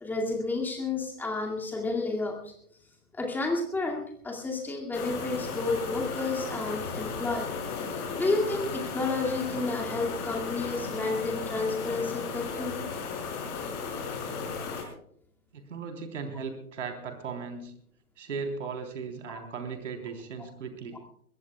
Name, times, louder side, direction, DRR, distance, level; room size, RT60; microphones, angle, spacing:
voice 1, 0.0-2.5 3.1-7.5 8.2-12.9 19.3-19.4, left 3 dB, 5° left, 0 dB, 2.3 m, -31 dB
sound 1, 4.9-14.8, left 5 dB, 25° left, 5.5 m, -35 dB
voice 2, 15.5-17.7 18.2-21.0, right 5 dB, 55° right, 6 dB, 3.7 m, -37 dB
23.0 x 20.5 x 2.3 m, 0.66 s
figure-of-eight pair, 130°, 44 cm